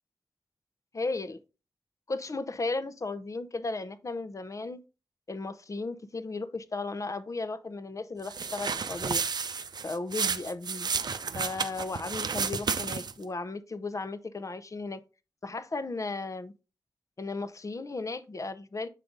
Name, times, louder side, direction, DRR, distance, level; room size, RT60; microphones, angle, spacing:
voice 1, 0.9-1.4 2.1-4.8 5.3-9.2 9.8-10.9 11.3-15.0 15.4-16.5 17.2-18.9, left 3 dB, 50° left, 0.7 m, -35 dB
sound 1, 8.2-13.2, right 5 dB, 80° right, 0.5 m, -32 dB
7.5 x 5.0 x 3.9 m
wide cardioid pair, 70°, 7 cm